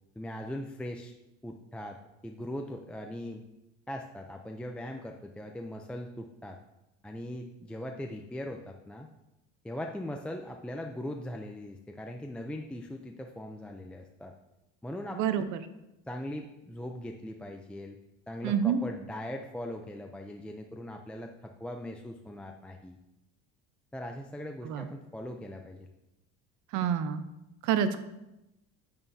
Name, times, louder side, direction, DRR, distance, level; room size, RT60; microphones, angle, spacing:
voice 1, 0.2-1.1 1.4-2.0 2.2-3.4 3.9-6.6 7.0-9.1 9.6-14.3 14.8-15.4 16.1-18.0 18.3-23.0 23.9-25.9, left 1 dB, 5° left, 2 dB, 0.5 m, -40 dB
voice 2, 15.1-15.6 18.4-18.8 24.6-24.9 26.7-27.2 27.6-28.0, right 8 dB, 65° right, 11 dB, 0.8 m, -28 dB
9.2 x 8.8 x 2.7 m, 0.92 s
cardioid pair, 120°, 32 cm